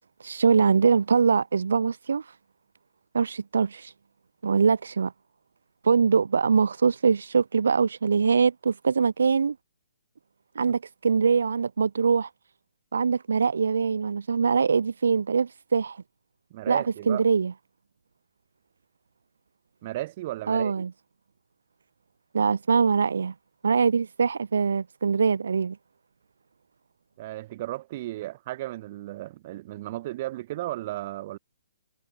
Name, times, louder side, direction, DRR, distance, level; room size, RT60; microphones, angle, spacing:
voice 1, 0.2-2.3 3.1-3.9 4.4-5.1 5.8-9.5 10.5-12.3 12.9-16.0 16.7-17.5 20.5-20.9 22.3-23.3 23.6-25.8, right 5 dB, 80° right, 1.4 m, -23 dB
voice 2, 16.5-17.3 19.8-20.7 27.2-31.4, right 16 dB, 40° right, 5.0 m, -35 dB
hypercardioid pair, 150°, 0 cm